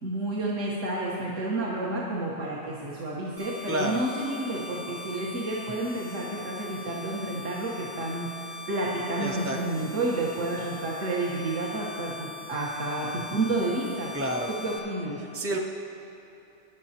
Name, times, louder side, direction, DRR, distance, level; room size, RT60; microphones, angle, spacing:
voice 1, 0.0-14.1 14.5-15.2, right 2 dB, 70° right, -5 dB, 1.6 m, -30 dB
sound 1, 3.4-14.8, left 4 dB, 50° right, 2.5 m, -41 dB
voice 2, 3.7-4.0 9.2-9.6 14.1-14.5 15.3-15.6, right 1 dB, 20° right, 0 dB, 0.4 m, -29 dB
19.5 x 11.5 x 2.9 m, 2.9 s
omnidirectional pair, 1.3 m